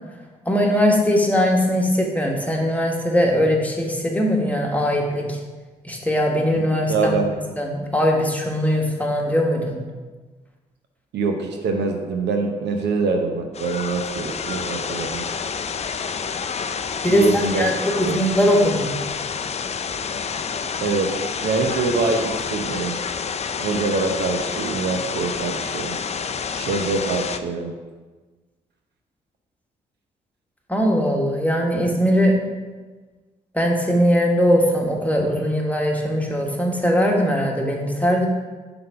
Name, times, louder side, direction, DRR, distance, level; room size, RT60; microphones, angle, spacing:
voice 1, 0.5-5.4 5.8-9.8 17.0-18.9 30.7-32.4 33.5-38.3, equal, 10° left, 0 dB, 1.4 m, -20 dB
voice 2, 6.9-7.4 11.1-15.2 17.1-17.7 18.0-18.2 20.8-21.1 21.4-23.0 23.6-26.0 26.5-27.7, right 4 dB, 70° right, 4 dB, 0.8 m, -24 dB
sound 1, 13.5-27.4, left 6 dB, 35° left, 0.4 m, -29 dB
5.6 x 3.9 x 5.7 m, 1.3 s
hypercardioid pair, 45°, 18 cm